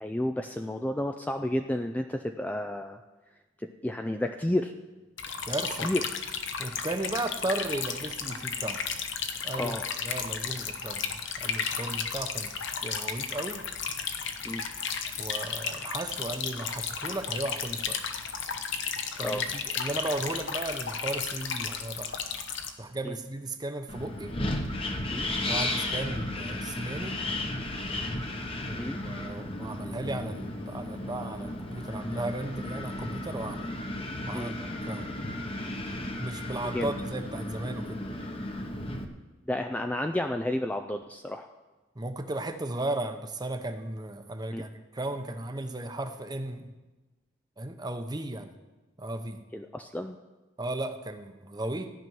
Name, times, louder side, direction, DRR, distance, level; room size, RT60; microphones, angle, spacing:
voice 1, 0.0-3.0 3.6-4.7 5.8-6.0 9.6-9.8 14.4-14.6 19.2-19.4 23.0-23.2 25.1-25.3 28.8-29.0 34.3-34.5 36.7-36.9 39.5-41.5 44.5-44.6 49.5-50.2, left 1 dB, 10° left, 5 dB, 0.4 m, -31 dB
sound 1, 5.2-22.7, left 6 dB, 65° left, 1.0 m, -34 dB
voice 2, 5.5-5.9 6.6-8.8 9.4-9.8 10.0-12.5 12.8-13.6 15.2-18.0 19.2-22.2 22.8-24.3 25.5-27.2 28.6-33.7 34.3-35.1 36.2-38.0 42.0-46.7 47.6-48.5 49.0-49.4 50.6-51.9, right 2 dB, 20° right, 7 dB, 0.8 m, -35 dB
Wind, 23.9-39.0, left 1 dB, 25° left, 1.0 m, -34 dB
14.0 x 6.0 x 9.4 m, 1.2 s
head